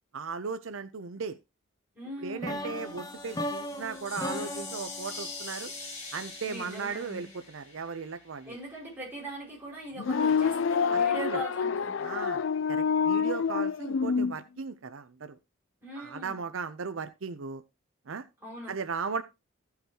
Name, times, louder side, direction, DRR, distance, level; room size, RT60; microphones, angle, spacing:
voice 1, 0.1-1.4 2.2-5.7 6.1-8.6 10.9-11.4 12.0-15.4 16.0-17.6 18.1-18.2 18.7-19.2, right 5 dB, 75° right, 0.6 m, -37 dB
voice 2, 1.9-2.6 6.4-7.3 8.5-12.1 15.8-16.4 18.4-18.8, right 1 dB, 10° right, 5.4 m, -41 dB
sound 1, 2.4-6.4, left 1 dB, 20° left, 0.7 m, -37 dB
sound 2, 2.7-8.6, left 3 dB, 35° left, 3.1 m, -44 dB
sound 3, 10.0-14.3, left 6 dB, 65° left, 0.4 m, -27 dB
15.0 x 5.8 x 2.9 m
head